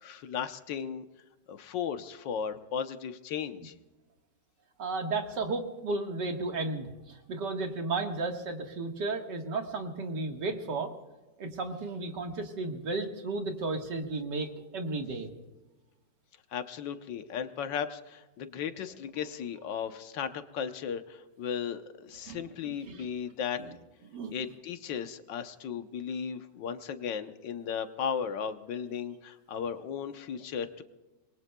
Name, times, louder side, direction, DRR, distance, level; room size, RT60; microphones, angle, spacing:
voice 1, 0.0-1.0 1.5-3.7 16.5-23.6 24.3-30.8, left 7 dB, 90° left, 9 dB, 1.6 m, -36 dB
voice 2, 4.8-10.9 11.4-15.4 22.3-23.1 23.6-23.7 24.1-24.3, right 3 dB, 75° right, 3 dB, 2.2 m, -34 dB
26.5 x 21.5 x 2.3 m, 1.1 s
omnidirectional pair, 1.9 m